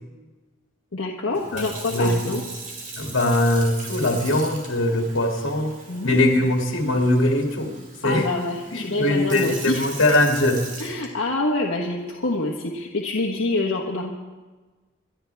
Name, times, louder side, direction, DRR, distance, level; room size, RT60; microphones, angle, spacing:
voice 1, 0.9-2.4 5.9-6.5 8.0-9.8 10.8-14.1, left 2 dB, 85° left, -1 dB, 1.4 m, -26 dB
Sink (filling or washing) / Fill (with liquid), 1.3-11.6 12.2-12.5, right 3 dB, 40° right, 2.5 m, -40 dB
voice 2, 1.5-2.1 3.0-5.7 6.0-7.7 8.0-8.3 8.7-10.7, left 1 dB, 70° left, 1 dB, 2.5 m, -21 dB
27.5 x 11.5 x 3.5 m, 1.3 s
head